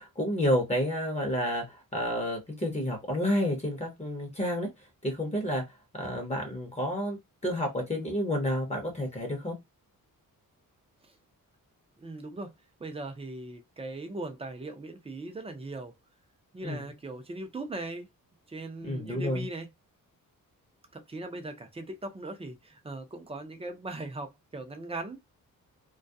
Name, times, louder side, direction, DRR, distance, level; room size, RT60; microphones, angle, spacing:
voice 1, 0.0-4.7 5.0-5.6 5.9-7.2 7.4-9.6 16.6-16.8 18.8-19.4, equal, 20° left, 0.8 m, -30 dB
voice 2, 12.0-12.5 12.8-16.0 16.5-18.1 18.5-19.7 20.9-25.2, right 2 dB, 15° right, 0.5 m, -39 dB
2.3 x 2.1 x 2.6 m
wide cardioid pair, 155°, 34 cm